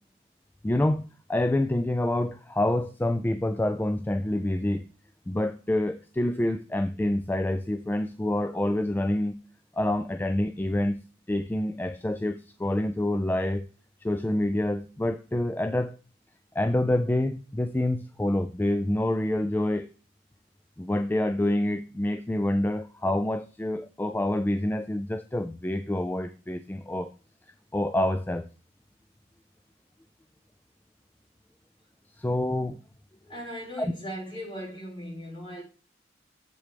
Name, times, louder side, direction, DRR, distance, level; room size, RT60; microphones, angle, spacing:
voice 1, 0.6-1.0 1.3-4.8 5.3-9.3 9.7-11.0 11.3-13.7 14.0-16.0 16.6-19.9 20.8-27.1 27.7-28.5 32.1-32.8 33.8-33.9, left 1 dB, 10° left, 0.3 m, -27 dB
voice 2, 33.3-35.6, equal, 30° left, 4.0 m, -38 dB
8.0 x 7.7 x 3.3 m
head